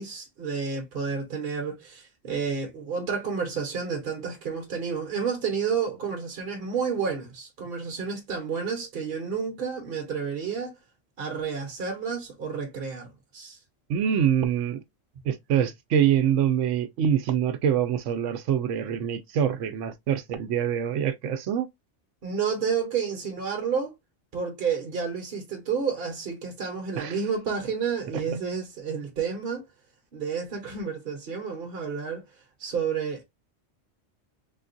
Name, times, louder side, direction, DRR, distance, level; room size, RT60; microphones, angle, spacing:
voice 1, 0.0-10.8 11.2-13.6 22.2-23.9 24.3-29.7 30.1-32.2 32.6-33.2, right 6 dB, 50° right, 1.1 m, -30 dB
voice 2, 13.9-14.8 15.2-21.7 27.0-27.2, right 9 dB, 75° right, 0.9 m, -25 dB
3.6 x 2.4 x 2.6 m
omnidirectional pair, 1.3 m